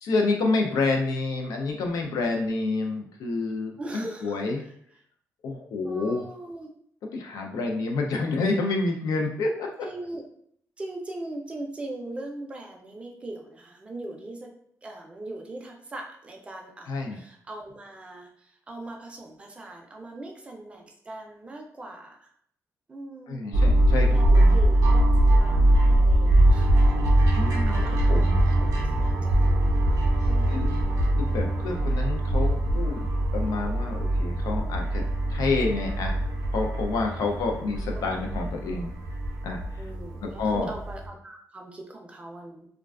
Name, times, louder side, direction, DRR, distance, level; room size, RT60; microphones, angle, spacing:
voice 1, 0.0-4.6 5.4-6.2 7.1-9.7 16.9-17.2 23.3-24.6 27.4-27.8 28.1-28.4 30.5-30.7 31.2-35.0 35.3-36.2 36.5-38.9 39.4-39.8 40.4-40.7, left 3 dB, 85° left, 2 dB, 0.5 m, -28 dB
voice 2, 3.8-4.7 5.8-6.7 9.8-10.2 10.8-14.5 14.8-22.3 22.9-23.7 24.1-24.3 24.5-25.1 25.4-26.8 27.4-29.8 30.2-31.1 37.2-37.4 37.9-38.2 39.8-42.7, right 2 dB, 20° right, 1 dB, 0.4 m, -40 dB
sound 1, 23.5-41.1, right 1 dB, 80° right, 0.4 m, -22 dB
2.4 x 2.2 x 2.3 m, 0.67 s
wide cardioid pair, 155°, 6 cm